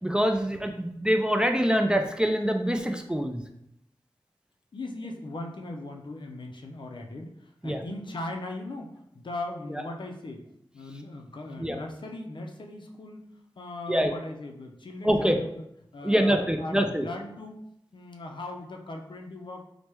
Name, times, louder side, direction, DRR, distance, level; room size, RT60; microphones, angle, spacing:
voice 1, 0.0-3.4 7.6-7.8 11.6-11.8 13.9-14.1 15.0-15.4 16.0-17.1, equal, 10° right, 4 dB, 0.3 m, -25 dB
voice 2, 4.7-10.4 10.7-13.3 13.6-15.6 15.9-17.6 17.9-19.6, left 2 dB, 60° left, 2 dB, 0.4 m, -39 dB
3.2 x 2.1 x 2.9 m, 0.76 s
cardioid pair, 40°, 9 cm